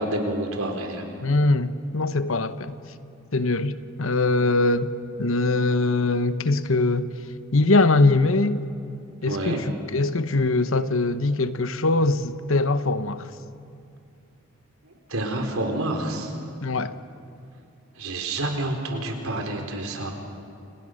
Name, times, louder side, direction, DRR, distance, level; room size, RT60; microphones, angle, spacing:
voice 1, 0.0-1.1 9.2-9.6 14.8-16.3 18.0-20.1, right 1 dB, 85° right, 4.1 m, -28 dB
voice 2, 1.2-2.8 3.3-7.1 7.5-8.7 9.2-13.3 16.6-17.0, left 2 dB, 70° left, 1.1 m, -22 dB
29.5 x 28.5 x 6.5 m
head